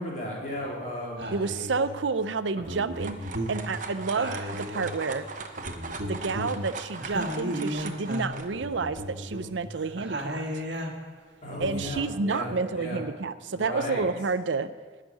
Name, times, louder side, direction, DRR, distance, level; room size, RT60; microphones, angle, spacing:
voice 1, 0.0-1.3 11.4-13.0 13.5-14.1, equal, 40° left, -3 dB, 3.5 m, -35 dB
sound 1, 0.6-0.8 1.2-2.0 2.6-5.2 5.6-11.1 11.5-12.0, equal, 65° right, 1.6 m, -35 dB
voice 2, 1.3-5.3 6.1-10.4 11.6-14.7, right 4 dB, 80° right, 13 dB, 0.6 m, -30 dB
sound 2, 2.6-8.5, right 4 dB, 40° right, 0.9 m, -40 dB
11.5 x 6.6 x 9.4 m, 1.4 s
head